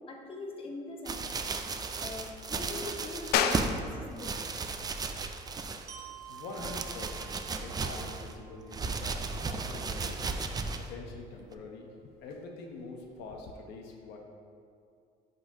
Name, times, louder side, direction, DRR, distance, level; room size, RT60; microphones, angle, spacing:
voice 1, 0.0-4.5, left 2 dB, 35° left, 1 dB, 0.8 m, -43 dB
sound 1, 1.1-3.8 4.2-6.0 6.3-8.3 8.7-10.9 11.5-11.6, right 4 dB, 25° right, 0.4 m, -35 dB
sound 2, 3.3-13.6, left 7 dB, 75° left, 0.4 m, -38 dB
Glockenspiel, 5.9-9.8, right 10 dB, 85° right, 0.6 m, -51 dB
voice 2, 6.3-10.2 10.8-11.9 12.2-14.2, left 3 dB, 90° left, 1 dB, 0.8 m, -45 dB
10.5 x 3.8 x 2.7 m, 2.4 s
cardioid pair, 110°, 17 cm